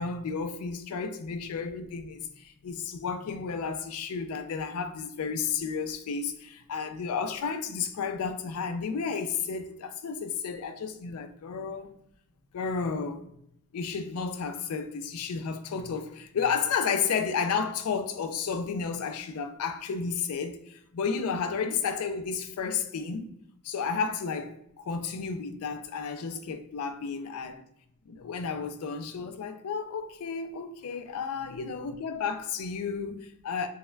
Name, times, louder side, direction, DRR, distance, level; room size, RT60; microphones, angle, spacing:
voice 1, 0.0-11.9 12.5-13.3 13.7-23.3 23.6-27.6 28.1-33.7, left 5 dB, 75° left, 0.4 m, -32 dB
5.4 x 2.1 x 2.2 m
head